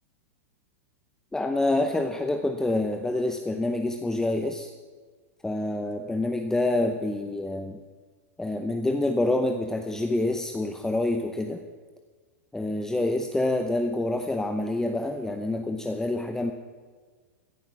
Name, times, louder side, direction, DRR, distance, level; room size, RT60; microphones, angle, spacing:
voice 1, 1.3-4.7 5.4-7.8 8.4-11.6 12.5-16.5, left 2 dB, 5° left, 5 dB, 0.8 m, -27 dB
16.5 x 10.0 x 6.3 m, 1.5 s
hypercardioid pair, 120°, 8 cm